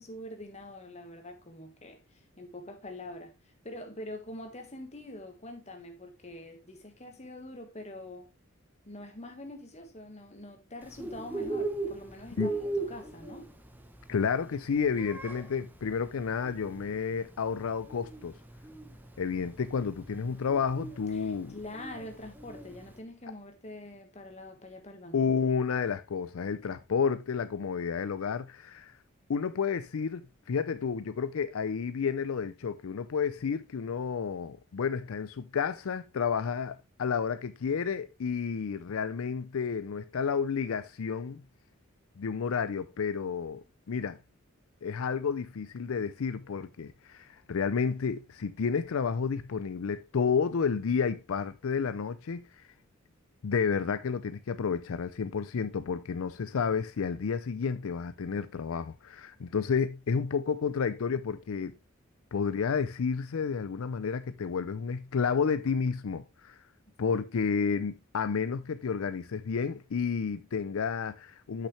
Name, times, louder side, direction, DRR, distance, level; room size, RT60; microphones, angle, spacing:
voice 1, 0.0-8.3 8.8-13.5 21.1-25.2 67.1-67.2, left 1 dB, 35° left, 1.6 m, -45 dB
Bird, 10.8-23.0, right 3 dB, 10° right, 0.8 m, -39 dB
voice 2, 14.1-18.3 19.2-21.6 25.1-28.9 29.3-30.2 30.5-41.4 42.2-44.2 44.8-52.4 53.4-61.7 62.3-66.6 67.0-71.7, left 6 dB, 85° left, 0.5 m, -31 dB
8.3 x 5.9 x 3.2 m
head